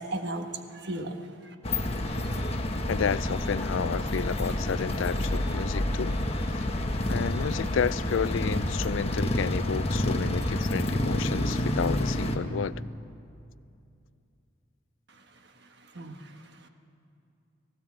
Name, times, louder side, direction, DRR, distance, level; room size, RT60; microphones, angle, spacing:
voice 1, 0.0-1.5 15.1-16.7, right 1 dB, 55° right, 1.4 m, -38 dB
sound 1, 1.6-12.4, left 1 dB, 30° left, 1.2 m, -29 dB
voice 2, 2.9-6.2 6.6-6.7 7.1-12.8, left 6 dB, 70° left, 0.4 m, -31 dB
17.5 x 17.5 x 8.5 m
head